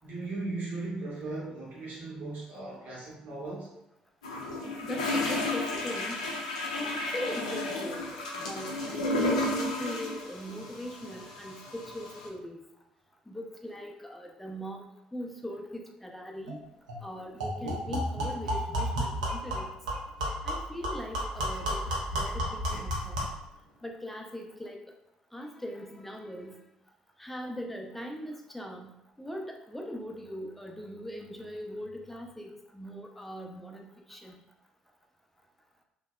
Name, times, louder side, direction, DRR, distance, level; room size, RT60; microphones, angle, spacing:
voice 1, 0.0-3.7, right 2 dB, 55° right, -5 dB, 0.9 m, -37 dB
sound 1, 4.2-12.3, left 2 dB, 80° left, 0.4 m, -33 dB
voice 2, 4.8-6.3 6.7-12.6 13.3-14.8 15.1-16.6 17.0-19.8 20.4-23.2 23.8-24.8 25.3-26.6 27.2-34.4, equal, 5° left, 1 dB, 0.4 m, -40 dB
sound 2, 16.5-16.6 16.9-17.0 17.4-23.4, equal, 80° right, 0.5 m, -32 dB
2.6 x 2.1 x 2.2 m, 0.92 s
figure-of-eight pair, 50°, 3 cm